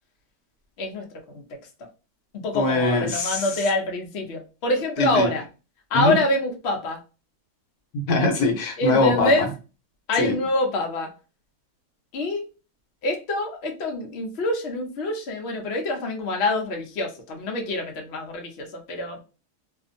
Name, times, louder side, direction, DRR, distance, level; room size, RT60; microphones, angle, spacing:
voice 1, 0.8-1.4 2.3-5.4 5.9-7.0 8.8-9.5 10.1-11.1 12.1-12.4 13.0-19.2, left 2 dB, 55° left, 0.8 m, -26 dB
voice 2, 2.5-3.5 5.0-5.3 5.9-6.1 7.9-9.3 10.2-10.4, left 2 dB, 75° left, 1.2 m, -22 dB
2.7 x 2.4 x 2.5 m
omnidirectional pair, 1.7 m